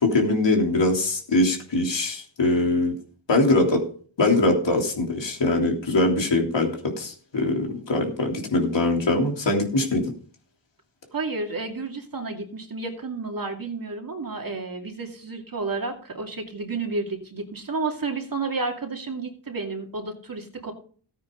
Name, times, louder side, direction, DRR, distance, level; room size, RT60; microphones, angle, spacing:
voice 1, 0.0-2.9 3.3-3.8 4.2-10.0, left 2 dB, 80° left, 1 dB, 3.4 m, -22 dB
voice 2, 11.1-20.7, right 3 dB, 50° right, 3 dB, 2.6 m, -31 dB
14.5 x 9.4 x 3.9 m, 0.44 s
wide cardioid pair, 70°, 43 cm